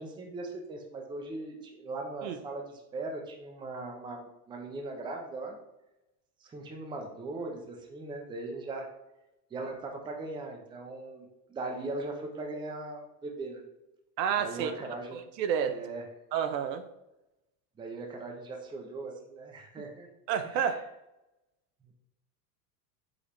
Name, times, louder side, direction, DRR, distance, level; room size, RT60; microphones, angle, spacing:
voice 1, 0.0-5.6 6.4-8.9 9.5-13.6 14.4-15.2 15.7-16.1 17.8-20.1 20.4-20.8 21.9-22.0, right 2 dB, 10° right, 2 dB, 0.4 m, -39 dB
voice 2, 14.2-14.7 15.1-15.7 16.3-16.8 20.3-20.8, right 8 dB, 85° right, 8 dB, 0.7 m, -29 dB
5.0 x 3.2 x 2.9 m, 0.93 s
supercardioid pair, 115°, 49 cm